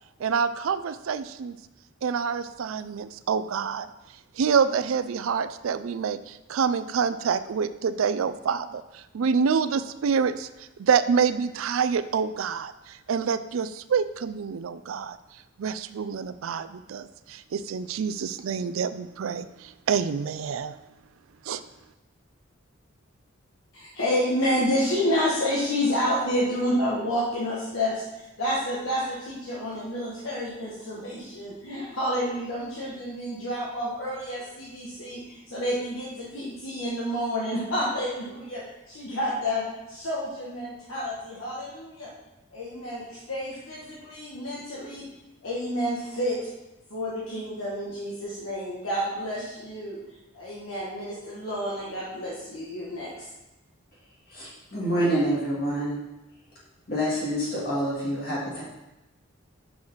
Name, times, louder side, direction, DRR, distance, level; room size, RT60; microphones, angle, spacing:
voice 1, 0.2-1.6 2.0-3.9 4.4-10.5 10.8-15.2 15.6-20.7 21.4-21.6, right 6 dB, 80° right, 12 dB, 0.4 m, -27 dB
voice 2, 23.7-39.6 39.9-42.1 42.5-45.1 45.4-46.4 46.9-50.0 50.3-53.3, equal, 80° left, -7 dB, 1.5 m, -29 dB
voice 3, 54.3-56.0 56.9-58.6, right 1 dB, 45° left, -6 dB, 1.9 m, -27 dB
6.2 x 4.9 x 5.5 m, 0.98 s
head